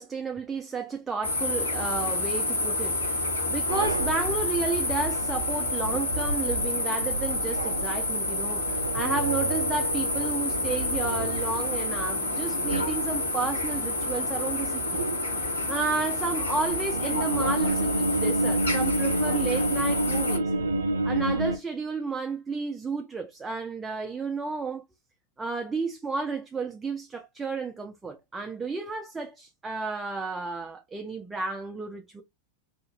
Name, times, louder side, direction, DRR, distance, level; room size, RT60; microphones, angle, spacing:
voice 1, 0.0-15.0 15.7-20.5 21.0-24.8 25.4-32.2, right 4 dB, 15° right, 0.5 m, -32 dB
sound 1, 1.2-20.4, left 2 dB, 85° left, 1.3 m, -29 dB
sound 2, 3.7-13.3 14.7-15.5 16.2-21.6, right 2 dB, 85° right, 0.4 m, -30 dB
2.9 x 2.5 x 2.4 m
figure-of-eight pair, 95°, 0 cm